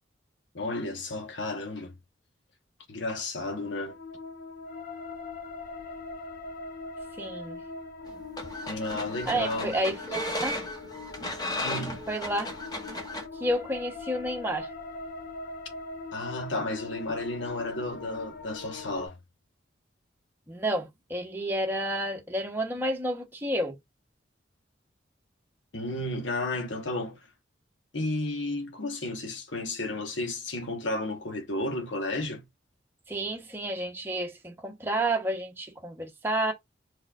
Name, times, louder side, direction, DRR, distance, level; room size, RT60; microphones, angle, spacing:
voice 1, 0.5-1.9 2.9-4.0 8.7-9.7 11.6-12.0 16.1-19.2 25.7-27.2 27.9-32.4, left 2 dB, 80° left, 1.3 m, -32 dB
sound 1, 3.5-19.1, left 3 dB, 50° left, 1.3 m, -41 dB
voice 2, 7.2-7.6 9.3-10.6 12.1-12.5 13.4-14.7 20.5-23.8 33.1-36.5, right 1 dB, 10° right, 0.9 m, -30 dB
sound 2, 8.1-13.3, left 1 dB, 20° left, 0.8 m, -35 dB
4.7 x 4.2 x 2.4 m
head